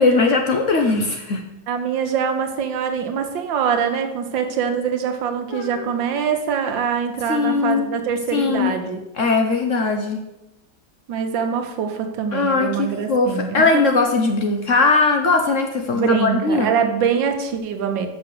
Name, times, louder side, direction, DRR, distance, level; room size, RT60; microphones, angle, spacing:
voice 1, 0.0-1.4 5.5-5.9 7.3-7.9 8.3-8.7 9.2-10.2 12.3-16.7, left 3 dB, 60° left, 3 dB, 0.9 m, -19 dB
voice 2, 1.7-9.0 11.1-13.8 15.9-18.1, right 7 dB, 90° right, 5 dB, 1.7 m, -23 dB
6.1 x 5.7 x 6.6 m, 0.95 s
omnidirectional pair, 2.0 m